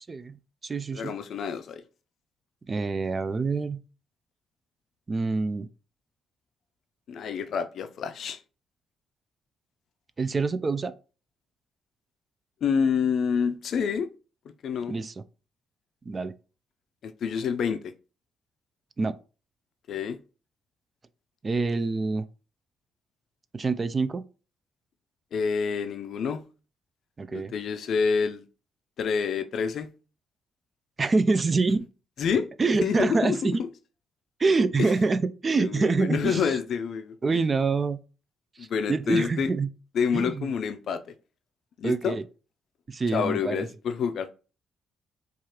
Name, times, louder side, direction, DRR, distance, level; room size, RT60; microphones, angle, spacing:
voice 1, 0.1-1.1 2.7-3.8 5.1-5.7 10.2-10.9 14.9-15.2 16.1-16.4 19.0-19.1 21.4-22.3 23.5-24.2 27.2-27.5 31.0-31.9 32.6-33.5 34.4-36.6 37.2-38.0 38.6-39.7 40.1-40.5 41.8-42.2 42.9-43.7, right 3 dB, 30° right, 0.3 m, -26 dB
voice 2, 0.9-1.8 7.1-8.4 12.6-14.1 14.6-15.0 17.0-17.8 19.9-20.2 25.3-26.4 27.3-28.4 29.0-29.9 32.2-32.5 32.8-33.7 34.8-34.9 35.6-37.4 38.6-39.5 39.9-41.0 41.8-42.2 43.1-44.3, left 6 dB, 65° left, 0.4 m, -28 dB
4.6 x 2.4 x 2.9 m
cardioid pair, 90°, 0 cm